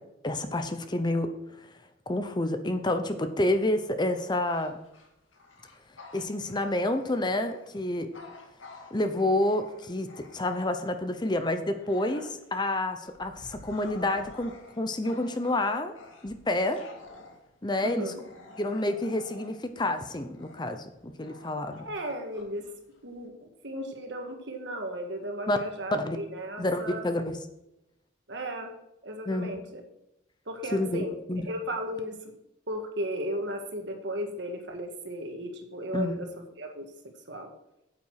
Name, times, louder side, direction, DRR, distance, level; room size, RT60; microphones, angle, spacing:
voice 1, 0.2-1.3 2.1-4.8 6.1-8.1 8.9-10.1 10.3-15.9 16.2-16.8 17.6-18.1 18.6-21.9 25.5-25.6 25.9-26.2 26.6-27.3 29.3-29.5 30.7-31.0 31.3-31.5 35.9-36.2, left 1 dB, 20° left, 8 dB, 0.8 m, -28 dB
Bark / Growling, 4.4-10.9 11.4-23.3, left 3 dB, 85° left, 2.0 m, -50 dB
voice 2, 17.8-18.2 21.9-22.7 23.0-27.1 28.3-28.7 29.0-29.8 30.5-31.2 31.5-32.3 32.7-36.3 36.6-36.9 37.3-37.5, equal, 60° right, 4 dB, 1.7 m, -35 dB
9.1 x 8.5 x 4.8 m, 0.87 s
head